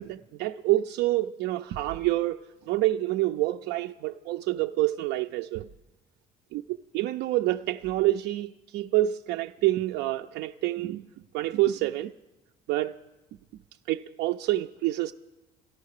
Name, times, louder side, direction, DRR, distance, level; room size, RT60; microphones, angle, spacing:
voice 1, 0.0-5.7 6.5-6.6 6.9-11.1 11.3-12.1 12.7-12.9 13.9-15.1, right 16 dB, 85° right, 0.4 m, -27 dB
13.0 x 12.0 x 6.5 m
cardioid pair, 110°, 17 cm